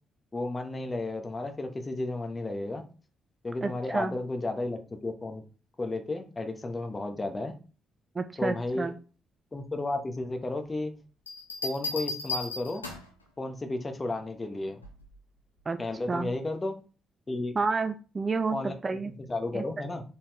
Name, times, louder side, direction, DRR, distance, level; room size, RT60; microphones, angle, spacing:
voice 1, 0.3-2.8 3.4-5.4 5.8-7.5 8.4-8.9 9.5-10.9 11.6-12.8 13.4-14.8 15.8-16.7 17.3-17.5 18.5-18.7 19.3-20.0, left 2 dB, 25° left, 5 dB, 1.0 m, -33 dB
voice 2, 3.6-4.2 8.1-9.0 15.7-15.8 16.1-16.4 17.5-19.1 19.5-19.6, right 4 dB, 30° right, 9 dB, 0.4 m, -30 dB
sound 1, 11.3-13.2 14.8-15.2, left 3 dB, 90° left, 0.5 m, -35 dB
4.1 x 3.8 x 3.1 m, 0.36 s
figure-of-eight pair, 40°, 0 cm